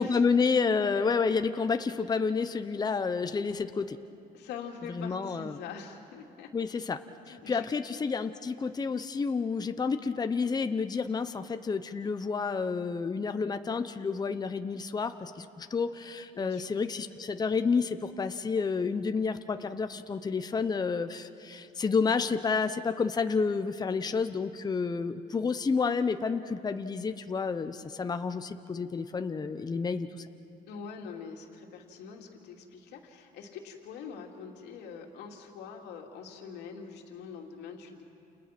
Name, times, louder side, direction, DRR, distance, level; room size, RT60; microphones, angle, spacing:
voice 1, 0.0-4.0 4.9-5.5 6.5-7.0 7.3-30.3, left 5 dB, 25° left, 8 dB, 0.9 m, -30 dB
voice 2, 4.3-6.8 7.3-7.7 16.3-16.7 30.7-38.0, left 6 dB, 85° left, 1 dB, 2.9 m, -44 dB
30.0 x 29.0 x 6.1 m, 2.7 s
cardioid pair, 110°, 17 cm